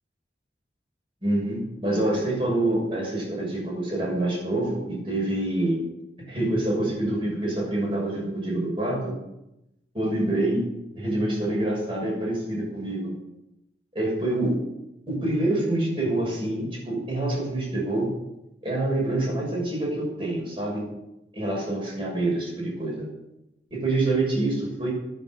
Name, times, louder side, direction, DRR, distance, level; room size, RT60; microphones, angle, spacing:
voice 1, 1.2-5.8 6.3-9.1 9.9-10.6 10.9-13.1 13.9-14.6 15.1-18.1 18.6-20.8 21.3-23.1 23.7-24.9, right 1 dB, 30° right, -3 dB, 6.6 m, -26 dB
11.0 x 10.0 x 8.0 m, 0.90 s
head